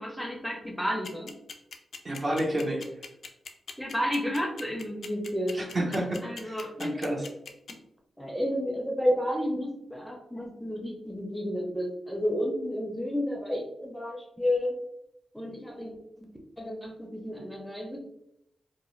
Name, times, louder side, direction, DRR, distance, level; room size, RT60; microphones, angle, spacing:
voice 1, 0.0-1.3 3.8-5.7 6.2-7.0 8.2-14.7 15.3-16.3 16.6-18.0, equal, ahead, 1 dB, 0.6 m, -31 dB
sound 1, 1.0-7.7, left 5 dB, 70° left, 0.4 m, -40 dB
voice 2, 2.0-2.9 5.5-7.2, right 1 dB, 50° right, -1 dB, 0.8 m, -30 dB
2.4 x 2.1 x 3.0 m, 0.81 s
cardioid pair, 55°, 0 cm